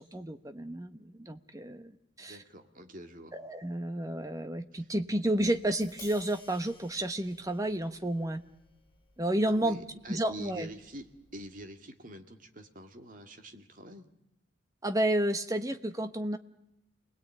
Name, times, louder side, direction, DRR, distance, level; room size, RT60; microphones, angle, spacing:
voice 1, 0.0-1.9 2.2-2.4 3.3-8.4 9.2-9.8 10.1-10.7 14.8-16.4, right 1 dB, 15° right, 9 dB, 1.1 m, -31 dB
voice 2, 2.2-3.4 4.7-4.9 9.5-14.1, right 1 dB, 40° right, 6 dB, 2.1 m, -46 dB
Tap, 5.5-11.7, left 3 dB, 20° left, 6.7 m, -56 dB
28.5 x 20.0 x 9.1 m, 0.85 s
head